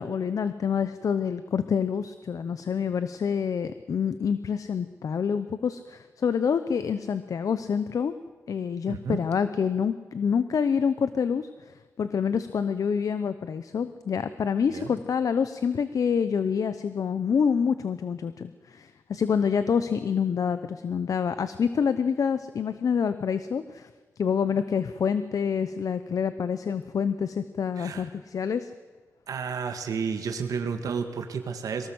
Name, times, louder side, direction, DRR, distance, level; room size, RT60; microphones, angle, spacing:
voice 1, 0.0-8.1 8.5-23.9 24.2-28.7, left 6 dB, 70° left, 12 dB, 0.9 m, -27 dB
voice 2, 8.9-9.2 14.7-14.9 27.7-28.1 29.3-31.9, right 6 dB, 85° right, 6 dB, 1.8 m, -31 dB
23.0 x 18.5 x 7.9 m, 1.5 s
wide cardioid pair, 100°, 6 cm